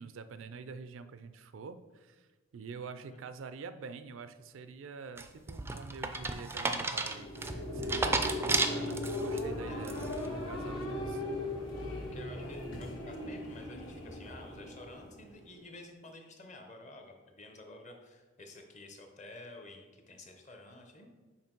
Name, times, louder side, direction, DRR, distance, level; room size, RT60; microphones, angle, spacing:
voice 1, 0.0-2.3 2.5-10.1 10.5-11.2, right 5 dB, 80° right, 11 dB, 0.4 m, -46 dB
sound 1, 5.2-9.4 9.8-10.3, right 3 dB, 10° right, 0.3 m, -33 dB
sound 2, 6.9-15.6, left 1 dB, 75° left, 1.7 m, -38 dB
voice 2, 11.8-21.1, left 2 dB, 40° left, 4 dB, 0.8 m, -51 dB
5.9 x 4.5 x 4.5 m, 1.2 s
head